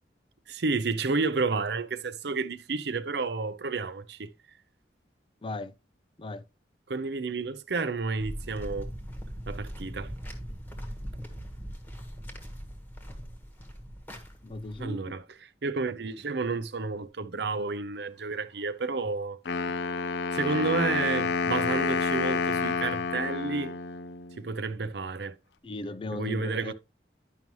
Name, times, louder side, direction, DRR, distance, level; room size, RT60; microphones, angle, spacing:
voice 1, 0.5-4.3 6.9-8.9 9.5-10.1 14.8-19.4 20.3-23.7 24.4-25.4 26.1-26.7, right 4 dB, 70° right, 0.6 m, -31 dB
sound 1, 8.2-14.8, equal, 10° left, 1.2 m, -40 dB
voice 2, 14.4-15.0 25.6-26.7, left 2 dB, 30° left, 0.4 m, -36 dB
Wind instrument woodwind instrument, 19.5-24.4, left 4 dB, 80° left, 0.5 m, -29 dB
10.5 x 5.4 x 3.0 m
head